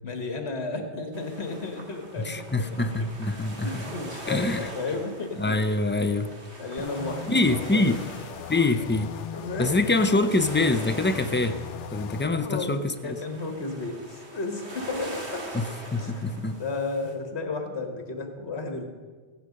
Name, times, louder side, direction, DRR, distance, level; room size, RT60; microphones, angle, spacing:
voice 1, 0.0-3.1 3.5-5.8 6.6-8.0 9.3-9.8 12.3-15.6 16.0-18.8, left 3 dB, 70° left, 4 dB, 1.9 m, -33 dB
sound 1, 1.1-17.1, right 1 dB, 70° right, 2.3 m, -43 dB
voice 2, 2.2-3.8 4.3-4.6 5.4-6.3 7.3-8.0 8.5-9.1 9.6-11.6 11.9-13.2 15.5-15.7 15.9-16.6, left 2 dB, 15° left, 8 dB, 0.4 m, -24 dB
sound 2, 6.8-12.3, left 8 dB, 90° left, 1.0 m, -39 dB
15.5 x 10.0 x 5.3 m, 1.5 s
omnidirectional pair, 1.2 m